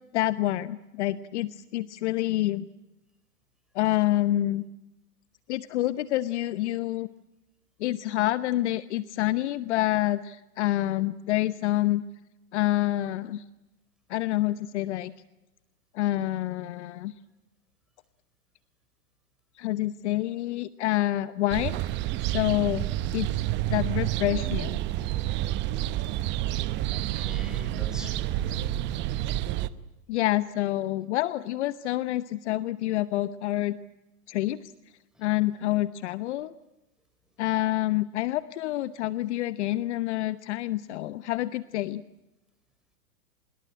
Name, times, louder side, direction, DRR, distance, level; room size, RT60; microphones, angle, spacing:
voice 1, 0.1-2.7 3.7-4.6 5.5-7.1 7.8-12.0 12.5-13.4 14.1-15.1 15.9-17.1 19.5-21.8 22.3-22.9 23.1-23.3 23.7-24.8 30.1-33.8 34.3-34.7 35.2-36.5 37.4-42.0, left 15 dB, 50° left, 15 dB, 0.9 m, -27 dB
sound 1, 21.5-29.7, right 14 dB, 25° right, 0.9 m, -29 dB
voice 2, 26.9-28.6, right 1 dB, ahead, 7 dB, 4.5 m, -43 dB
25.0 x 21.5 x 9.8 m, 0.99 s
hypercardioid pair, 125°, 46 cm